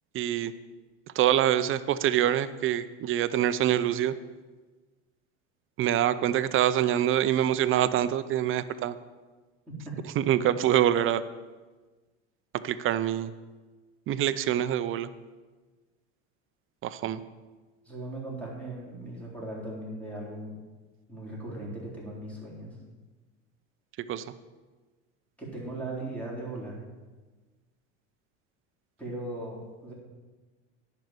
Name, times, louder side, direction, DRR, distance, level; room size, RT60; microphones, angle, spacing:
voice 1, 0.1-0.5 1.1-4.1 5.8-9.0 10.2-11.2 12.6-13.3 14.1-15.1 16.8-17.2 24.1-24.3, right 11 dB, 35° right, 13 dB, 0.6 m, -25 dB
voice 2, 17.8-20.5 21.1-22.8 25.4-26.8 29.0-29.9, right 2 dB, 5° left, -5 dB, 4.1 m, -38 dB
10.0 x 5.6 x 7.9 m, 1.3 s
supercardioid pair, 110°, 36 cm